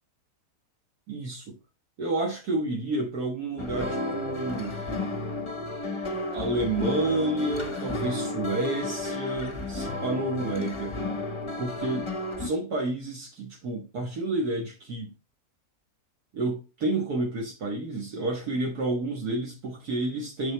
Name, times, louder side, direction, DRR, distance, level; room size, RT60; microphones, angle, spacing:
voice 1, 1.1-1.5 2.0-4.8 6.3-11.0 11.6-12.1 12.4-15.1 16.3-20.5, right 2 dB, 75° right, 1.9 m, -30 dB
sound 1, 3.6-12.5, left 2 dB, 25° left, 0.6 m, -32 dB
6.5 x 6.2 x 3.3 m
omnidirectional pair, 1.7 m